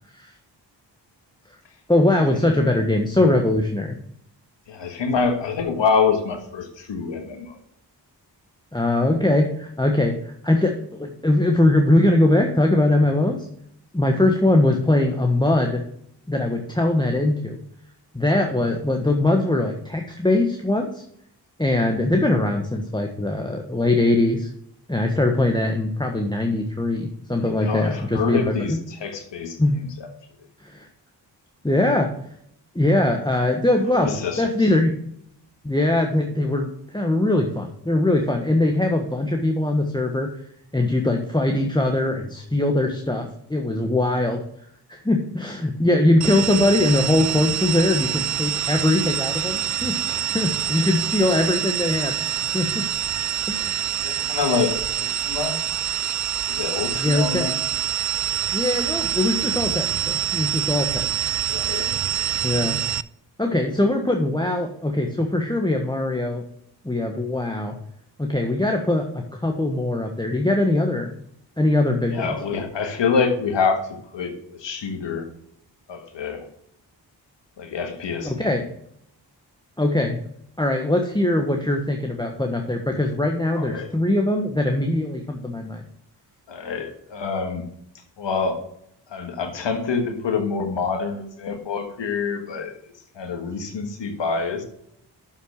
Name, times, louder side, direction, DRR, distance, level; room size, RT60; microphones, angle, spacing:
voice 1, 1.9-4.0 8.7-13.5 13.9-15.8 16.3-17.6 18.1-21.0 21.6-24.5 24.9-28.8 29.6-29.9 30.6-30.9 31.6-32.1 32.7-34.1 34.4-34.9 35.6-40.3 40.7-44.4 44.9-52.9 53.5-53.8 57.0-57.5 58.5-61.2 62.4-62.8 63.4-66.4 66.8-67.8 68.2-71.2 71.6-72.4 78.2-78.6 79.8-80.2 80.6-85.8, left 1 dB, 10° left, 2 dB, 1.3 m, -21 dB
voice 2, 4.7-7.6 27.5-29.6 33.9-34.5 54.0-55.6 56.5-57.6 61.5-62.2 72.1-73.8 74.1-75.3 75.9-76.5 77.6-78.5 83.5-83.9 86.5-87.7 88.2-88.6 89.1-92.7 93.1-94.6, left 5 dB, 80° left, 5 dB, 1.6 m, -26 dB
sound 1, 46.2-63.0, right 9 dB, 40° right, 0.4 m, -26 dB
6.9 x 5.8 x 6.5 m, 0.71 s
supercardioid pair, 40°, 44 cm